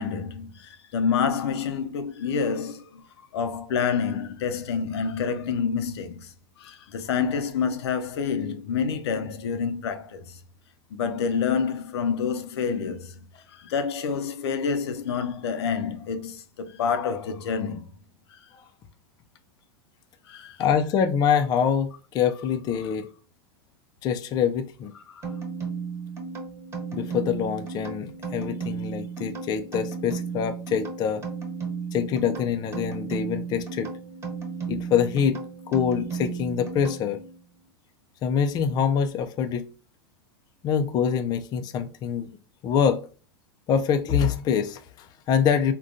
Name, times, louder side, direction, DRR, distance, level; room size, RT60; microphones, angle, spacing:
voice 1, 0.0-6.3 6.6-10.4 10.9-13.1 13.5-17.8 18.3-18.4 20.3-20.6 22.8-22.9 25.1-25.2, left 6 dB, 80° left, 0.5 m, -28 dB
voice 2, 20.6-23.1 24.0-24.9 26.9-31.2 31.9-33.9 34.7-37.2 38.2-39.7 40.6-42.4 42.6-43.1 43.7-45.7, left 7 dB, 30° left, 0.4 m, -25 dB
sound 1, 25.2-37.4, right 5 dB, 20° right, 1.1 m, -34 dB
3.6 x 2.2 x 2.5 m
supercardioid pair, 120°, 14 cm